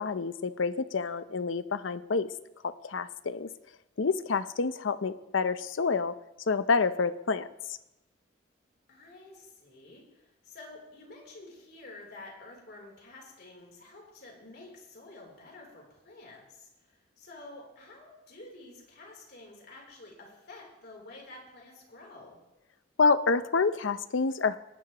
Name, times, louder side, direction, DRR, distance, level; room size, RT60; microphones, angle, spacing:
voice 1, 0.0-2.3 2.6-3.5 4.0-6.1 6.5-7.5 23.0-24.6, left 4 dB, 75° left, 13 dB, 0.6 m, -28 dB
voice 2, 8.9-22.4, left 2 dB, 55° left, -1 dB, 3.4 m, -50 dB
18.5 x 10.5 x 3.0 m, 0.95 s
head